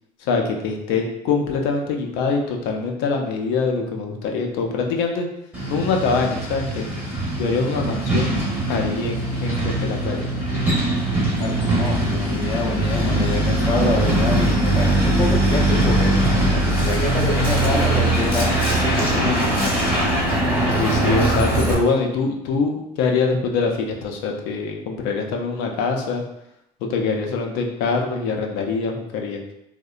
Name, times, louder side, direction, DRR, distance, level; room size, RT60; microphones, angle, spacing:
voice 1, 0.2-5.3 5.7-6.9 7.4-8.4 8.7-10.3 20.8-26.2 26.8-29.4, left 4 dB, 80° left, 2 dB, 0.4 m, -24 dB
Truck, 5.5-21.7, right 1 dB, 10° right, 0.8 m, -21 dB
voice 2, 11.4-16.2 16.5-19.7, left 2 dB, 25° left, 0 dB, 0.4 m, -27 dB
2.7 x 2.1 x 2.4 m, 0.82 s
supercardioid pair, 105°, 16 cm